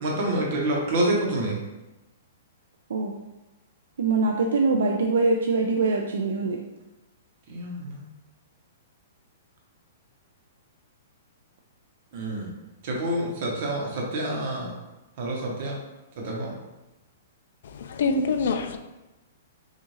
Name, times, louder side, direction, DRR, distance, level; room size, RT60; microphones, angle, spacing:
voice 1, 0.0-1.6 7.5-8.0 12.1-12.5 12.8-14.7 15.2-15.8 16.2-16.5, right 1 dB, 35° right, 1.0 m, -27 dB
voice 2, 4.0-6.6, right 3 dB, 75° right, 0.5 m, -23 dB
voice 3, 17.6-18.8, left 4 dB, 55° left, 0.4 m, -25 dB
6.3 x 2.5 x 3.1 m
hypercardioid pair, 180°, 0 cm